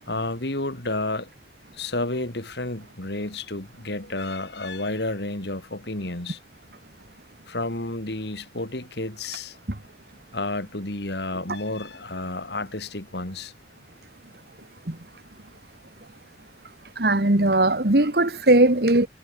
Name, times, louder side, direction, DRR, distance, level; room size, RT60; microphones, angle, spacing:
voice 1, 0.1-1.3 1.7-6.4 7.5-9.6 10.3-13.5, left 2 dB, 70° left, 2.9 m, -31 dB
voice 2, 17.0-19.1, right 2 dB, 60° right, 1.8 m, -19 dB
head